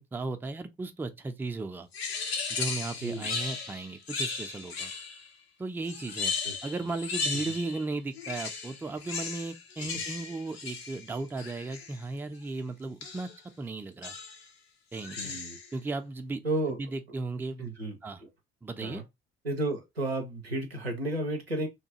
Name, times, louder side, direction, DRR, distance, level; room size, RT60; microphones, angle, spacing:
voice 1, 0.0-1.9 2.5-4.9 5.6-6.3 6.6-13.3 13.6-14.1 14.9-15.4 15.7-16.4 16.7-17.7 18.0-18.2 18.6-19.0, right 3 dB, 5° right, 0.4 m, -36 dB
sound 1, 1.9-5.3 5.8-7.8 8.1-12.0 13.0-13.4 14.0-14.5 14.9-15.7, left 4 dB, 80° left, 0.5 m, -36 dB
voice 2, 3.0-3.3 6.4-6.6 6.8-6.9 7.4-7.5 9.8-9.9 15.1-15.6 16.4-16.8 17.6-18.3 18.8-19.0 19.4-21.7, right 1 dB, 90° right, 0.5 m, -33 dB
2.8 x 2.2 x 2.8 m
figure-of-eight pair, 45°, 30 cm